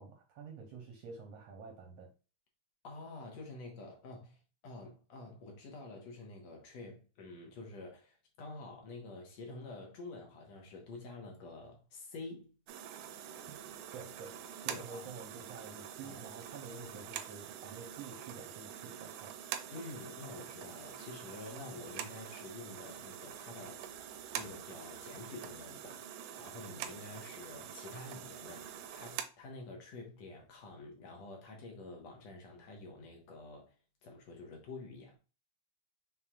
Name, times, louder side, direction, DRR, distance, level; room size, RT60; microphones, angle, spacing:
voice 1, 0.0-2.1 13.9-19.4, right 5 dB, 70° right, 1.6 m, -49 dB
voice 2, 2.8-12.5 14.7-15.1 16.0-16.3 16.7-17.0 19.7-23.9 24.3-33.8 34.0-35.2, left 3 dB, 65° left, 2.1 m, -48 dB
sound 1, 12.7-29.2, right 9 dB, 90° right, 2.1 m, -45 dB
5.9 x 3.7 x 2.3 m
omnidirectional pair, 3.6 m